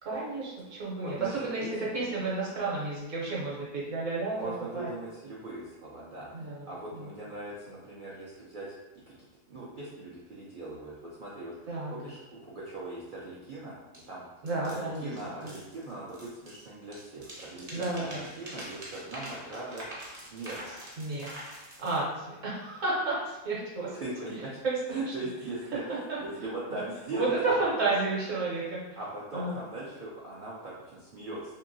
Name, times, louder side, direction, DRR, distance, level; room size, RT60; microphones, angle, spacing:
voice 1, 0.0-4.9 6.3-7.0 11.7-11.9 14.4-15.2 15.4-15.5 17.7-18.3 21.0-21.4 21.8-24.0 24.6-25.0 26.1-26.2 27.1-28.8 29.3-29.5, right 3 dB, 60° right, -5 dB, 1.1 m, -31 dB
voice 2, 1.0-1.9 4.3-8.7 9.1-9.2 9.5-10.9 11.2-13.8 14.1-14.2 14.6-19.9 20.1-20.7 24.0-24.6 24.9-27.3 29.0-31.6, right 2 dB, 80° right, -7 dB, 0.4 m, -40 dB
sound 1, 13.9-14.0 14.5-16.7 16.9-22.0, right 1 dB, 40° right, 0.7 m, -45 dB
2.8 x 2.6 x 2.6 m, 1.1 s
omnidirectional pair, 1.5 m